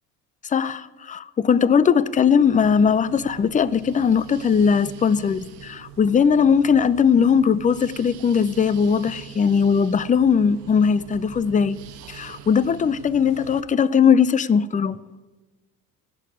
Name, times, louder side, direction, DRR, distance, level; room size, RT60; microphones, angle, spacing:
voice 1, 0.4-11.8 12.1-15.0, left 6 dB, 15° left, 0.5 m, -19 dB
sound 1, 2.4-13.6, right 9 dB, 75° right, 1.2 m, -43 dB
12.0 x 8.4 x 9.7 m
hypercardioid pair, 60°, 47 cm